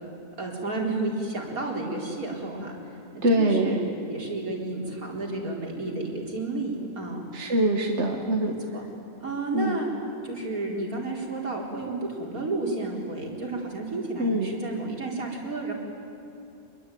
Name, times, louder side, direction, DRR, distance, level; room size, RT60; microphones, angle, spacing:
voice 1, 0.4-3.8 4.1-7.2 8.4-8.8 9.2-9.9 10.2-15.7, right 2 dB, 85° right, -1 dB, 4.8 m, -31 dB
voice 2, 3.2-3.8 7.3-8.5 9.5-9.8 14.2-14.5, right 1 dB, 50° right, 2 dB, 1.9 m, -23 dB
26.0 x 22.0 x 9.4 m, 2.7 s
omnidirectional pair, 1.5 m